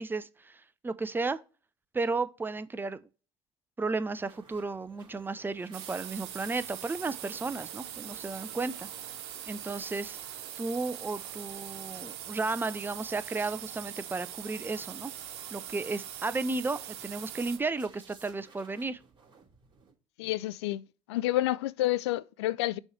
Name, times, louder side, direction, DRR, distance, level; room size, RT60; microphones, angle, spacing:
voice 1, 0.0-1.4 1.9-3.0 3.8-8.9 9.5-10.2 10.6-15.1 15.5-19.0, right 3 dB, 15° right, 0.6 m, -33 dB
sound 1, 4.1-19.9, right 5 dB, 35° right, 3.3 m, -59 dB
sound 2, 5.7-17.6, right 10 dB, 75° right, 1.1 m, -42 dB
voice 2, 20.2-20.8 21.1-22.8, left 16 dB, 80° left, 0.4 m, -29 dB
6.2 x 3.2 x 5.9 m
hypercardioid pair, 75°, 14 cm